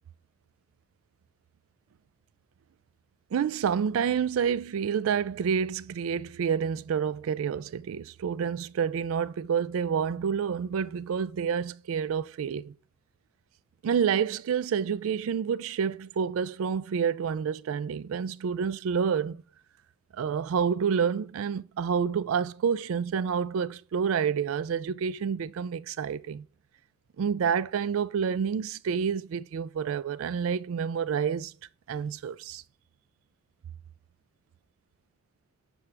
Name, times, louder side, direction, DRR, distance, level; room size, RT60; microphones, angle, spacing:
voice 1, 3.3-12.7 13.8-19.4 20.1-26.5 27.2-31.5 31.9-32.6, right 7 dB, 90° right, 0.3 m, -28 dB
9.6 x 4.6 x 3.3 m
head